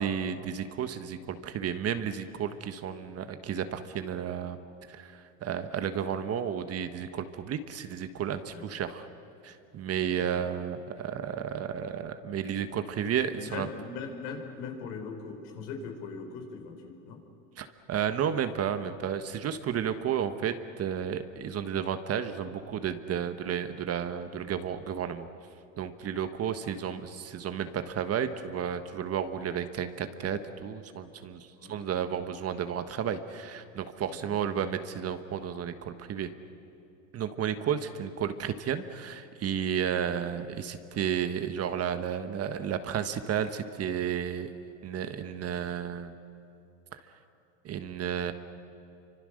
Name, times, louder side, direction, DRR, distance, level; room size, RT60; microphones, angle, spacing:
voice 1, 0.0-4.6 4.9-9.1 9.4-13.7 17.6-25.3 25.8-36.3 37.1-44.5 44.8-46.1 46.9-47.0 47.6-48.3, right 8 dB, 35° right, 9 dB, 1.4 m, -32 dB
voice 2, 10.1-10.4 13.4-17.2 31.6-31.8 34.1-34.4, left 5 dB, 70° left, 3 dB, 4.8 m, -40 dB
29.0 x 25.0 x 6.6 m, 2.9 s
supercardioid pair, 105°, 41 cm